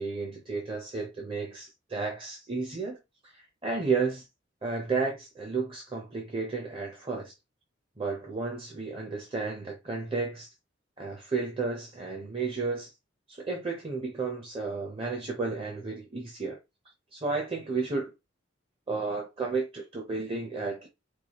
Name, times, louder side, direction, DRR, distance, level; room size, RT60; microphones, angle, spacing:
voice 1, 0.0-3.0 3.2-4.2 4.6-7.3 8.0-10.5 11.0-12.9 13.3-16.6 17.1-18.1 18.9-20.9, right 4 dB, 30° right, 0.8 m, -32 dB
4.6 x 2.3 x 2.9 m
head